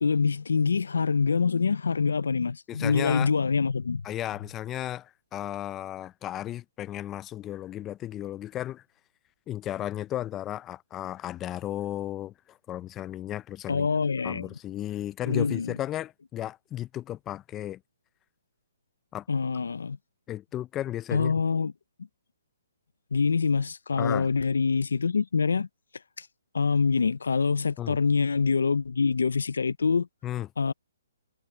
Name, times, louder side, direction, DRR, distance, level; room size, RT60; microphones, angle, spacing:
voice 1, 0.0-4.0 13.7-14.5 15.3-15.8 19.3-20.0 21.1-21.7 23.1-25.7 26.2-26.3 26.5-30.1 30.6-30.7, left 5 dB, 85° left, 0.5 m, -25 dB
voice 2, 2.7-3.3 4.0-8.8 9.5-13.9 14.2-17.8 19.1-19.2 20.3-21.3 24.0-24.3 27.8-28.0 30.2-30.5, left 13 dB, 15° left, 0.4 m, -34 dB
hypercardioid pair, 155°, 0 cm